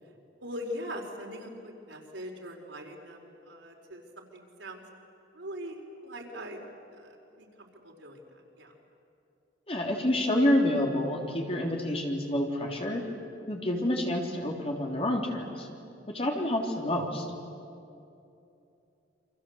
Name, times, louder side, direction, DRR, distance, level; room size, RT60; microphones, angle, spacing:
voice 1, 0.4-4.8 5.3-6.6 6.9-8.2 8.5-8.7 16.3-16.5, equal, 85° right, 1 dB, 4.5 m, -41 dB
voice 2, 9.7-13.0 13.5-15.7 16.1-17.3, left 1 dB, 30° left, 1 dB, 3.5 m, -28 dB
29.0 x 25.5 x 8.0 m, 2.7 s
head